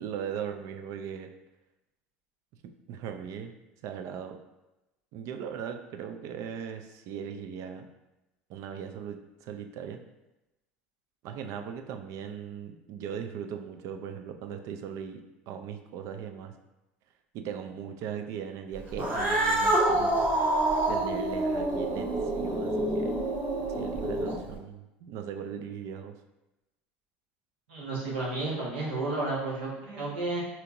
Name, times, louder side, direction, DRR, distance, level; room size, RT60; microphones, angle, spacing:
voice 1, 0.0-1.3 2.6-3.5 3.8-4.4 5.1-7.9 8.5-10.0 11.2-16.5 17.3-20.2 20.9-23.2 23.8-26.2, right 8 dB, 55° right, 7 dB, 0.4 m, -38 dB
Cat, 18.9-24.5, right 1 dB, 35° right, 1.2 m, -27 dB
voice 2, 27.7-30.4, right 2 dB, 80° right, -4 dB, 1.1 m, -32 dB
4.3 x 2.8 x 2.5 m, 0.99 s
hypercardioid pair, 80°, 6 cm